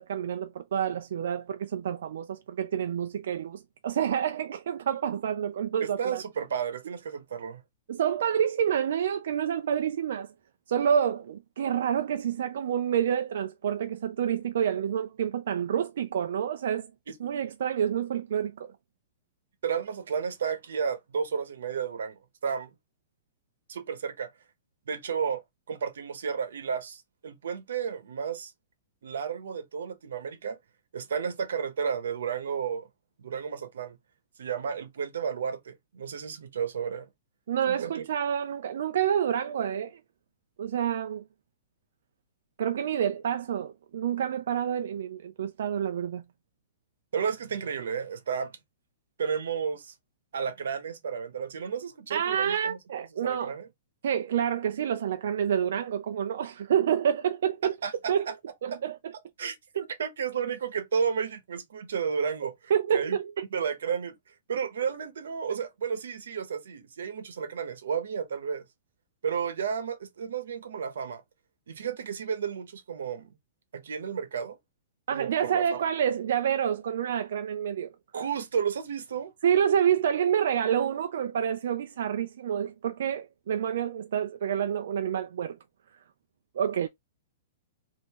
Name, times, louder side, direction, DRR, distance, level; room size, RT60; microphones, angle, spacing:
voice 1, 0.0-6.2 7.9-10.3 10.7-16.9 17.2-18.7 37.5-40.0 40.6-41.2 42.6-46.2 52.1-53.5 54.0-57.7 58.1-58.3 58.6-59.1 62.7-63.4 75.1-77.9 79.4-85.6 86.6-86.9, right 9 dB, 60° right, 0.3 m, -28 dB
voice 2, 5.8-7.6 19.6-22.7 23.7-24.3 24.9-25.4 25.7-28.5 29.0-30.6 30.9-32.9 33.2-34.0 34.4-37.1 37.7-38.0 47.1-48.6 49.2-49.9 50.3-52.8 53.2-53.7 57.8-58.3 58.7-58.8 59.4-62.5 62.9-63.2 63.5-64.1 64.5-68.6 69.2-71.2 71.7-73.3 73.7-74.6 75.1-75.8 78.1-79.3, right 7 dB, 90° right, 0.9 m, -32 dB
3.5 x 2.6 x 2.9 m
hypercardioid pair, 175°, 0 cm